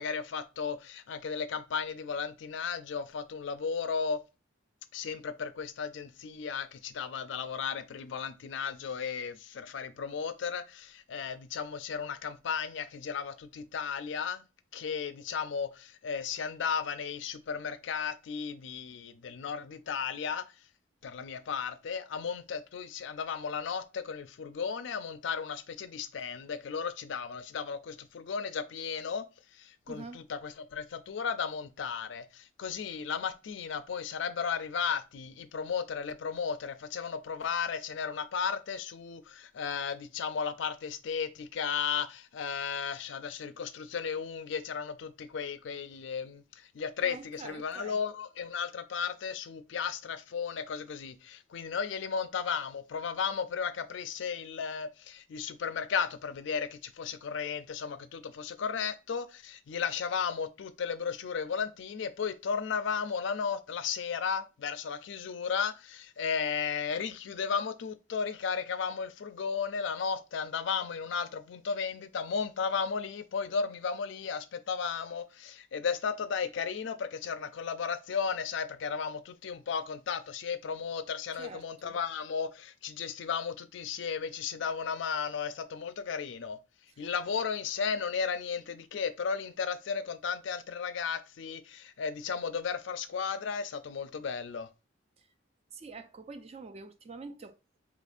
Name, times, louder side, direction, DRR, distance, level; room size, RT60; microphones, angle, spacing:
voice 1, 0.0-4.2 4.9-14.4 14.7-20.4 21.0-29.2 29.5-86.6 87.0-94.7, left 6 dB, 65° left, 0.4 m, -34 dB
voice 2, 29.9-30.2 47.0-48.0 81.4-82.0 87.0-87.1 95.2-95.3 95.7-97.8, right 4 dB, 30° right, 0.3 m, -46 dB
4.1 x 2.8 x 2.4 m
head